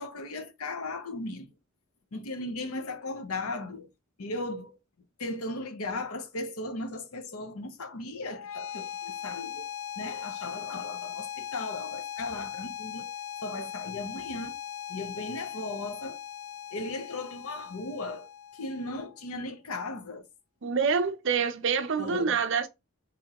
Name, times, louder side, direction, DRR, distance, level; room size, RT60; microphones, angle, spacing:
voice 1, 0.0-1.5 2.1-3.9 4.2-4.8 5.2-9.7 10.0-13.1 13.4-14.5 14.9-16.2 16.7-18.3 18.5-20.2 22.0-22.4, left 2 dB, 85° left, 0.8 m, -37 dB
sound 1, 8.3-19.3, left 9 dB, 65° left, 0.3 m, -39 dB
voice 2, 20.6-22.7, right 5 dB, 60° right, 0.6 m, -26 dB
4.8 x 3.6 x 2.9 m
head